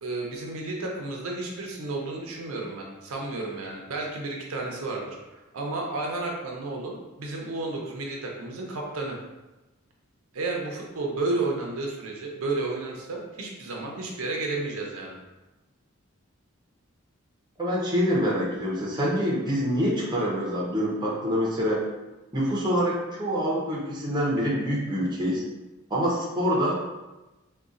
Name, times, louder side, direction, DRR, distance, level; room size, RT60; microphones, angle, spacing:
voice 1, 0.0-9.2 10.3-15.2, right 2 dB, 75° right, -1 dB, 0.6 m, -32 dB
voice 2, 17.6-21.8 22.3-25.4 25.9-26.7, equal, 20° right, -4 dB, 0.6 m, -26 dB
3.8 x 2.2 x 2.4 m, 1.1 s
head